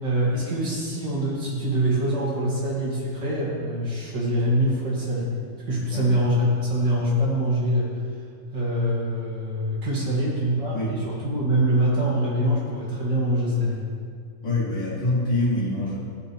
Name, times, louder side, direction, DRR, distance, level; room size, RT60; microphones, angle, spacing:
voice 1, 0.0-5.3 5.6-7.9 8.5-13.8, equal, 75° right, -6 dB, 2.8 m, -24 dB
voice 2, 14.4-16.0, left 1 dB, 90° left, -9 dB, 2.8 m, -25 dB
14.5 x 5.7 x 3.2 m, 2.1 s
omnidirectional pair, 1.9 m